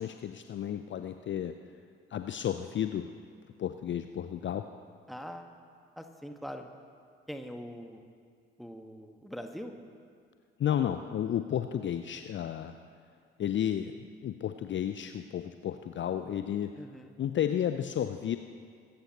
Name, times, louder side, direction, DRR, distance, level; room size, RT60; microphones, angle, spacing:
voice 1, 0.0-1.5 2.1-3.1 3.6-4.6 10.6-12.7 13.4-13.9 14.2-16.7 17.2-18.4, left 10 dB, 40° left, 9 dB, 0.6 m, -32 dB
voice 2, 5.1-5.5 6.0-6.7 7.3-8.0 8.6-9.7 16.8-17.1, equal, ahead, 5 dB, 1.5 m, -42 dB
24.5 x 14.5 x 3.0 m, 2.2 s
figure-of-eight pair, 45°, 31 cm